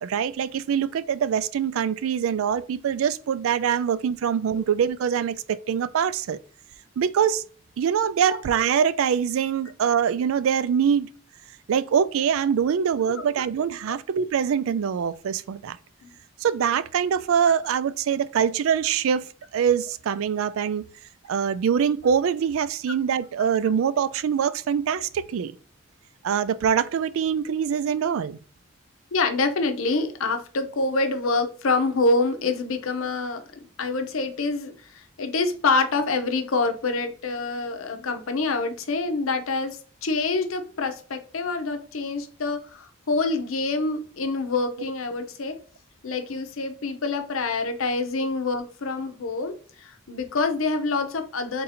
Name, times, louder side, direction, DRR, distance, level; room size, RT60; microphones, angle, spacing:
voice 1, 0.0-6.4 7.0-7.4 7.8-11.1 11.7-15.8 16.4-20.9 21.3-25.6 26.2-28.4, right 7 dB, 80° right, 0.3 m, -24 dB
voice 2, 29.1-33.4 33.8-45.6 46.0-51.6, left 3 dB, 80° left, 0.7 m, -26 dB
3.8 x 2.7 x 4.1 m
head